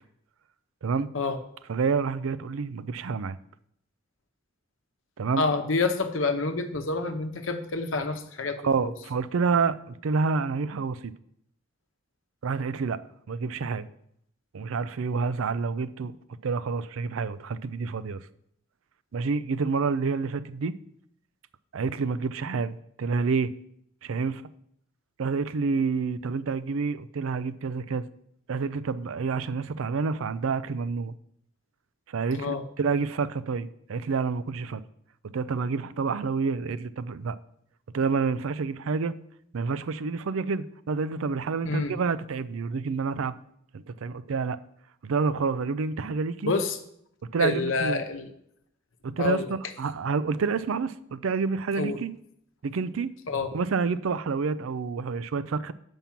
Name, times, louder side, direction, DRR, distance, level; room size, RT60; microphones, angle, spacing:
voice 1, 0.8-1.1 1.7-3.4 5.2-5.5 8.6-11.1 12.4-13.0 13.3-13.9 14.5-16.1 16.4-18.2 19.1-20.7 21.7-23.5 24.0-24.4 25.2-28.0 28.5-31.1 32.1-34.8 35.2-37.4 37.9-39.1 39.5-43.3 43.7-44.6 45.0-46.5 47.3-48.0 49.0-52.1 52.6-53.1 53.5-55.7, right 5 dB, 85° right, 15 dB, 0.4 m, -28 dB
voice 2, 5.4-8.9 32.3-32.6 41.6-41.9 46.4-46.8 47.4-48.3 49.2-49.5 51.8-52.0 53.3-53.5, left 3 dB, 75° left, 7 dB, 0.9 m, -28 dB
7.4 x 5.4 x 5.8 m, 0.70 s
head